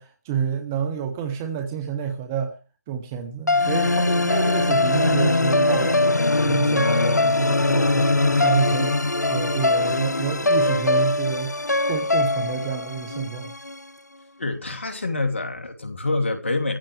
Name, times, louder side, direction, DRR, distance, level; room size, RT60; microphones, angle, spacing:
voice 1, 0.0-2.6 2.9-6.1 6.4-11.6 11.9-13.5, right 7 dB, 10° right, 0.7 m, -29 dB
sound 1, 3.5-13.7, left 2 dB, 80° left, 0.7 m, -21 dB
voice 2, 14.4-16.8, left 2 dB, 45° left, 2.8 m, -26 dB
20.5 x 15.0 x 3.4 m
figure-of-eight pair, 165°, 9 cm